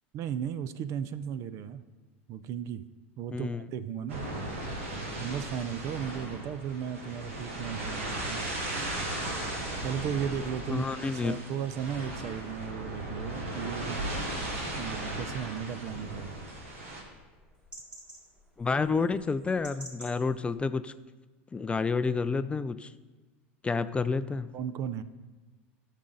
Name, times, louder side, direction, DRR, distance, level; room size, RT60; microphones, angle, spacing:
voice 1, 0.1-1.8 2.3-2.8 3.2-4.2 5.2-8.4 9.8-10.9 11.2-14.0 14.8-16.4 24.5-25.0, right 8 dB, 50° right, 14 dB, 0.5 m, -35 dB
voice 2, 3.3-3.6 10.7-11.3 18.6-20.9 21.5-22.9 23.6-24.5, left 4 dB, 15° left, 13 dB, 0.4 m, -29 dB
sound 1, 4.1-17.0, right 1 dB, 85° right, 2.0 m, -36 dB
Robin alarm call, 14.0-20.6, right 1 dB, 15° right, 3.3 m, -53 dB
13.5 x 6.5 x 3.9 m, 1.2 s
hypercardioid pair, 95°, 7 cm